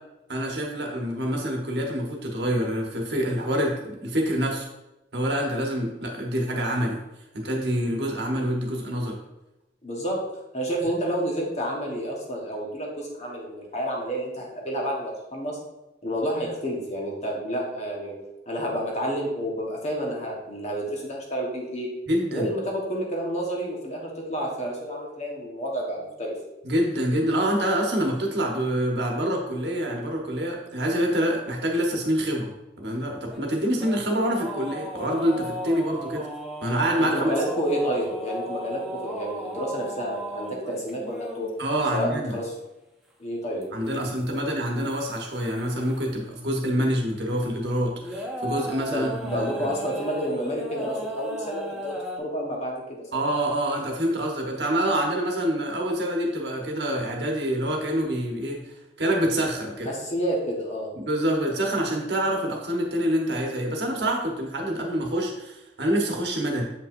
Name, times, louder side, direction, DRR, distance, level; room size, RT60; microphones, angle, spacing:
voice 1, 0.3-4.7 5.1-7.0 7.3-9.2 22.1-22.5 26.6-32.5 32.8-36.3 36.6-37.3 41.6-42.4 43.7-49.5 53.1-59.9 61.0-66.6, equal, 60° right, 0 dB, 1.2 m, -26 dB
voice 2, 9.8-10.2 10.5-15.6 16.0-18.1 18.5-21.9 22.3-26.3 37.0-41.5 41.9-42.5 43.2-43.7 43.9-44.4 48.9-52.8 53.1-53.2 59.8-60.9, equal, 35° left, -2 dB, 1.3 m, -30 dB
sound 1, 33.3-41.5 43.6-44.3 44.7-46.1 46.5-46.6 48.0-52.2, equal, ahead, 0.7 m, -36 dB
7.2 x 5.1 x 2.6 m, 0.96 s
head